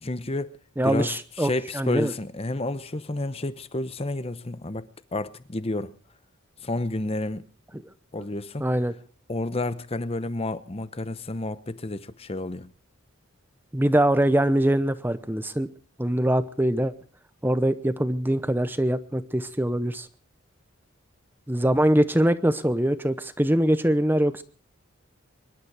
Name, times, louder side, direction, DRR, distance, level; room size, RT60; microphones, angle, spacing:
voice 1, 0.0-0.6 0.8-1.1 1.4-5.9 6.6-7.5 7.7-7.8 8.1-8.7 9.3-12.7, left 2 dB, 30° left, 0.8 m, -30 dB
voice 2, 0.8-2.1 8.6-8.9 13.7-15.7 16.0-16.9 17.4-20.1 21.5-24.4, right 1 dB, 10° right, 0.8 m, -23 dB
24.5 x 12.0 x 4.8 m
head